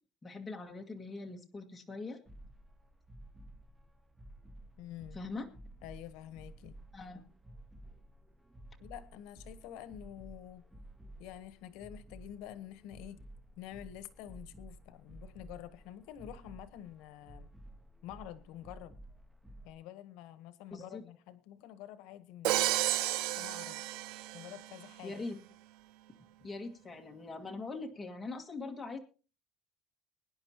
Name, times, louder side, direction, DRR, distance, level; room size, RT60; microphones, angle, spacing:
voice 1, 0.2-2.2 5.1-5.5 6.9-7.2 20.7-21.0 25.0-25.4 26.2-29.0, left 3 dB, 10° left, 2 dB, 1.8 m, -42 dB
sound 1, 2.3-19.7, right 1 dB, 5° right, 0.8 m, -53 dB
voice 2, 4.8-5.2 5.8-6.7 8.8-10.6 11.2-13.2 13.6-17.5 18.0-19.0 19.6-22.7 23.4-23.8 24.3-25.2, left 12 dB, 85° left, 14 dB, 1.1 m, -48 dB
Crash cymbal, 22.4-24.7, right 15 dB, 85° right, 0.6 m, -32 dB
23.0 x 10.0 x 2.9 m, 0.34 s
cardioid pair, 175°, 0 cm